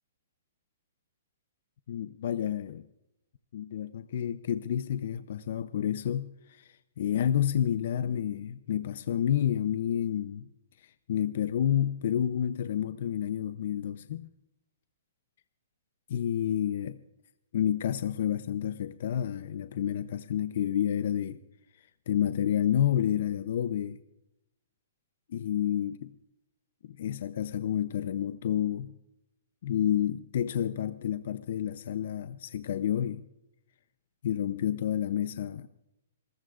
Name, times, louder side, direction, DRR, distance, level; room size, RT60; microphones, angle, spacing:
voice 1, 1.9-2.8 3.5-10.5 10.8-14.3 16.1-17.0 17.5-21.4 22.1-24.0 25.3-26.1 26.8-28.9 29.6-33.2 34.2-35.7, left 10 dB, 60° left, 0.6 m, -29 dB
28.0 x 14.5 x 2.5 m
hypercardioid pair, 155°, 0 cm